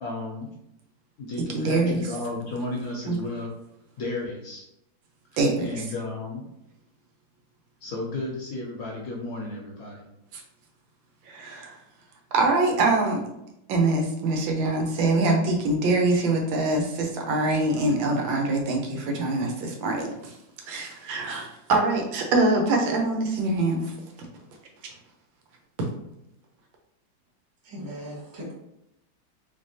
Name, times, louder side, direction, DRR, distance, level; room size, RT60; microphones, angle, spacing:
voice 1, 0.0-0.5 1.2-3.5 4.0-4.7 5.6-6.5 7.8-10.0, left 2 dB, 65° left, -1 dB, 0.9 m, -33 dB
voice 2, 1.5-2.1 3.1-3.2 5.4-5.7 10.3-10.4 11.2-11.8 12.3-13.2 13.7-20.4 20.7-23.9 24.8-24.9 25.8-25.9, right 2 dB, 80° right, 2 dB, 1.5 m, -24 dB
voice 3, 27.6-28.5, equal, 35° right, -4 dB, 0.3 m, -38 dB
3.6 x 3.3 x 2.6 m, 0.83 s
omnidirectional pair, 2.1 m